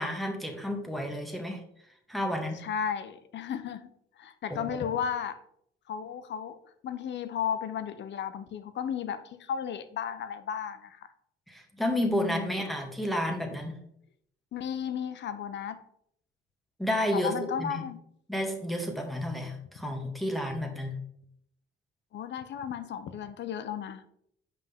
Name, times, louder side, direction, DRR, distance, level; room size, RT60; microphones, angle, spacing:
voice 1, 0.0-1.6 2.1-2.6 4.5-4.9 11.5-13.8 16.8-17.8 18.3-21.0, equal, ahead, 2 dB, 1.6 m, -31 dB
voice 2, 2.6-5.4 5.9-6.6 6.8-11.1 12.1-12.7 14.5-15.8 17.1-18.0 22.1-24.0, left 8 dB, 65° left, 12 dB, 0.7 m, -34 dB
7.7 x 5.3 x 3.6 m, 0.72 s
cardioid pair, 90°, 20 cm